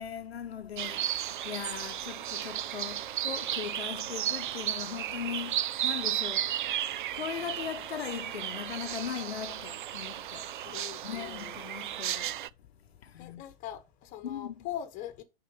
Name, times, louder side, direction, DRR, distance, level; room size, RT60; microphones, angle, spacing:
voice 1, 0.0-6.6 7.1-10.5 11.0-12.4 13.0-13.4 14.2-14.7, left 8 dB, 75° left, 0.9 m, -39 dB
sound 1, 0.8-12.5, right 12 dB, 55° right, 0.5 m, -34 dB
voice 2, 10.6-11.5 13.2-15.2, left 11 dB, 25° left, 1.3 m, -41 dB
9.5 x 4.5 x 5.1 m
hypercardioid pair, 125°, 31 cm